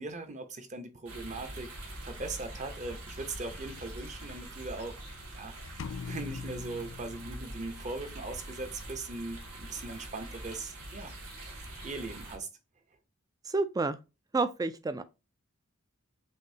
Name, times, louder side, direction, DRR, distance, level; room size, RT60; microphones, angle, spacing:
voice 1, 0.0-1.8 2.0-5.0 5.3-11.6 11.8-12.5, right 3 dB, 35° right, 0.8 m, -40 dB
sound 1, 1.1-12.4, right 1 dB, 85° right, 1.9 m, -44 dB
sound 2, 5.8-7.8, left 5 dB, 60° left, 0.4 m, -41 dB
voice 2, 13.5-14.0 14.3-15.0, right 3 dB, 15° right, 0.4 m, -29 dB
6.5 x 2.7 x 2.7 m
head